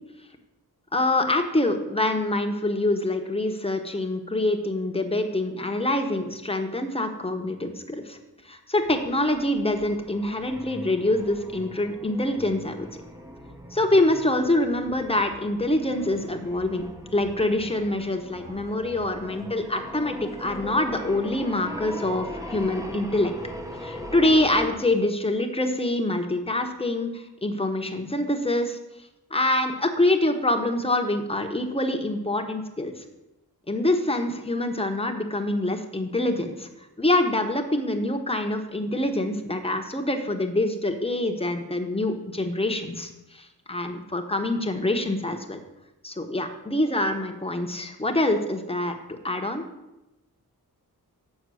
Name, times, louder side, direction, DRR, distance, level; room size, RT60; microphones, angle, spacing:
voice 1, 0.9-8.2 8.5-12.9 13.7-16.9 17.1-23.3 23.8-28.8 29.3-33.0 33.7-36.7 37.0-45.6 46.0-49.7, left 1 dB, 15° left, 4 dB, 1.1 m, -25 dB
sound 1, 8.8-24.8, equal, 10° right, 0.9 m, -40 dB
7.9 x 6.3 x 6.3 m, 0.96 s
wide cardioid pair, 80°, 37 cm